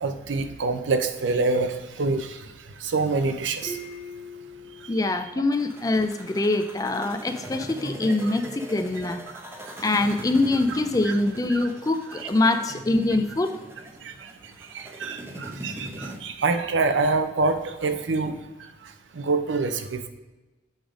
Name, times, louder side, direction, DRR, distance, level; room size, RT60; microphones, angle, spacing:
voice 1, 0.0-2.4 2.8-3.8 10.7-10.8 11.0-11.1 11.5-11.6 14.0-14.3 14.7-18.4 19.1-20.1, right 3 dB, 90° right, 9 dB, 0.6 m, -26 dB
sound 1, 3.6-6.2, equal, 40° right, 1.6 m, -42 dB
voice 2, 4.9-9.2 9.8-13.6, left 2 dB, 20° left, 8 dB, 0.3 m, -24 dB
sound 2, 5.5-16.2, right 1 dB, 15° right, 0.7 m, -40 dB
7.9 x 3.5 x 5.0 m, 1.1 s
head